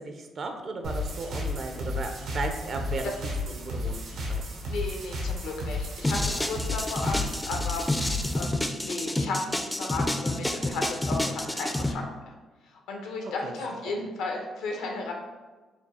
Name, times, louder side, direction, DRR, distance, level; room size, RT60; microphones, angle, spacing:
voice 1, 0.0-4.0 4.3-4.4 13.4-13.5 13.8-13.9, right 3 dB, 55° right, 5 dB, 0.5 m, -35 dB
sound 1, 0.8-8.4, left 2 dB, 80° right, 0.9 m, -33 dB
voice 2, 4.7-7.9 8.3-12.3 12.7-15.1, left 3 dB, 90° left, 1 dB, 0.7 m, -34 dB
sound 2, 6.0-11.9, left 1 dB, 10° left, 0.3 m, -29 dB
4.3 x 2.3 x 4.1 m, 1.2 s
cardioid pair, 90°, 0 cm